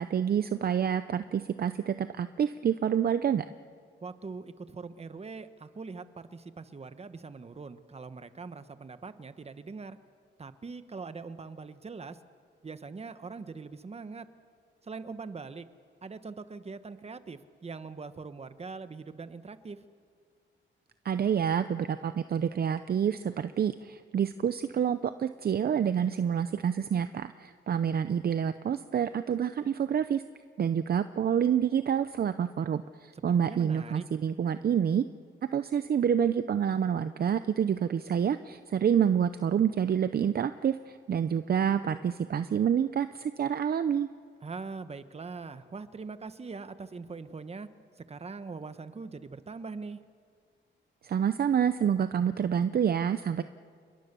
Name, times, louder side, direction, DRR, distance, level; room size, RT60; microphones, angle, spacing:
voice 1, 0.0-3.4 21.0-30.2 30.6-35.0 35.5-44.1 51.0-53.4, right 8 dB, 50° right, 11 dB, 0.6 m, -28 dB
voice 2, 4.0-10.0 10.4-12.2 12.6-14.3 14.8-15.6 16.0-19.8 33.1-34.0 44.4-47.7 48.1-50.0, right 4 dB, 30° right, 11 dB, 1.2 m, -42 dB
29.0 x 21.5 x 6.9 m, 2.1 s
cardioid pair, 100°, 20 cm